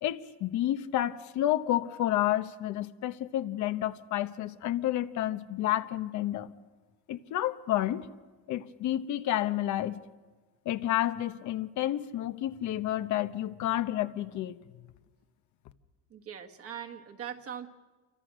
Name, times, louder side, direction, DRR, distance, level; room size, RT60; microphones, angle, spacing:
voice 1, 0.0-6.5 7.1-8.1 8.5-10.0 10.6-14.6, left 13 dB, 60° left, 10 dB, 1.0 m, -30 dB
voice 2, 16.1-17.7, right 8 dB, 45° right, 4 dB, 1.7 m, -41 dB
28.0 x 24.5 x 6.3 m, 1.3 s
cardioid pair, 145°, 33 cm